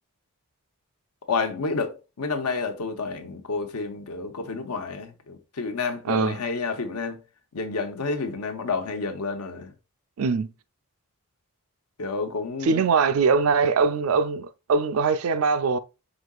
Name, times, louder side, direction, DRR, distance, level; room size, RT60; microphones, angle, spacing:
voice 1, 1.3-7.2 7.5-9.7 12.0-12.8, left 4 dB, 85° left, 0.8 m, -30 dB
voice 2, 6.1-6.4 10.2-10.5 12.6-15.8, right 5 dB, 65° right, 0.4 m, -22 dB
5.1 x 3.7 x 2.3 m
head